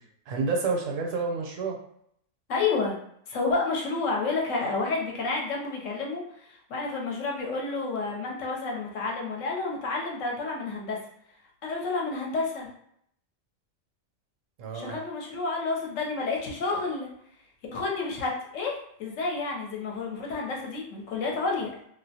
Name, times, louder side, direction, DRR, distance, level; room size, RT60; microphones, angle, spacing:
voice 1, 0.0-1.8 14.6-15.0, right 4 dB, 75° right, 1 dB, 0.9 m, -29 dB
voice 2, 2.5-3.0 3.3-11.0 11.6-12.7 14.7-17.1 17.7-21.7, left 3 dB, 75° left, -1 dB, 0.9 m, -30 dB
2.4 x 2.1 x 2.7 m, 0.69 s
omnidirectional pair, 1.4 m